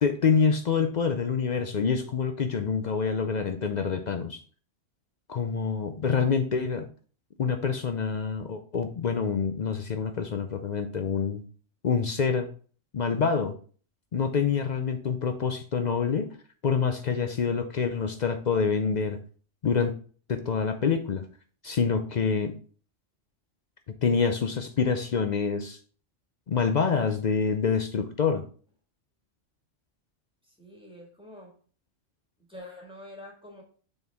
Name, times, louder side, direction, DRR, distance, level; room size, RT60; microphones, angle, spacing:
voice 1, 0.0-4.4 5.3-6.9 7.4-11.4 11.8-12.5 12.9-13.5 14.1-16.3 16.6-19.2 19.6-20.0 20.3-21.2 21.6-22.5 24.0-25.8 26.5-28.4, left 5 dB, 55° left, 8 dB, 0.5 m, -26 dB
voice 2, 30.4-31.5 32.4-33.6, left 1 dB, 5° right, -1 dB, 1.7 m, -46 dB
6.9 x 4.3 x 3.4 m, 0.42 s
omnidirectional pair, 1.3 m